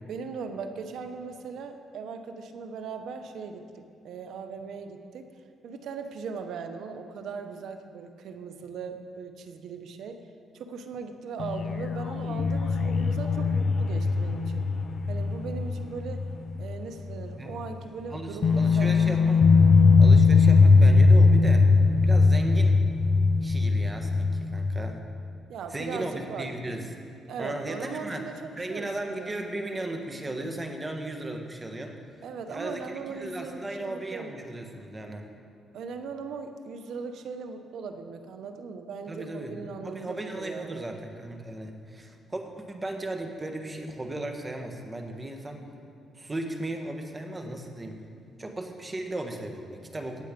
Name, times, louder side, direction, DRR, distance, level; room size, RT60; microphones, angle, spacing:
voice 1, 0.1-5.3 5.6-10.3 10.5-14.7 15.1-16.3 16.6-19.0 25.5-26.5 27.3-29.3 32.2-34.3 35.7-40.9, right 5 dB, 75° right, 7 dB, 1.0 m, -39 dB
sound 1, 11.4-16.8 17.1-17.2 18.4-25.0, left 4 dB, 55° left, 0.6 m, -20 dB
voice 2, 18.1-19.4 20.0-21.7 22.0-22.8 23.4-25.0 25.7-26.9 27.4-28.3 28.6-32.0 32.5-35.3 39.1-45.6 46.1-48.0 48.4-50.2, right 1 dB, 20° right, 4 dB, 1.5 m, -36 dB
17.5 x 7.8 x 5.3 m, 2.5 s
cardioid pair, 90°, 0 cm